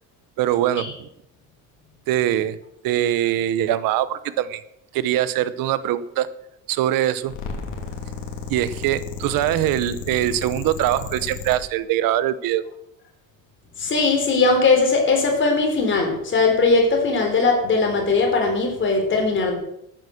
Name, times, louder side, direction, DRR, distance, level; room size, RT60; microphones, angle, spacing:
voice 1, 0.4-0.9 2.1-2.6 2.8-4.6 4.9-6.3 6.7-7.3 8.5-12.6, right 12 dB, 90° right, 15 dB, 0.9 m, -22 dB
sound 1, 7.2-11.6, left 5 dB, 60° left, 3.0 m, -33 dB
voice 2, 13.8-19.6, left 3 dB, 35° left, 2 dB, 4.1 m, -19 dB
13.5 x 9.1 x 6.5 m, 0.78 s
cardioid pair, 160°, 33 cm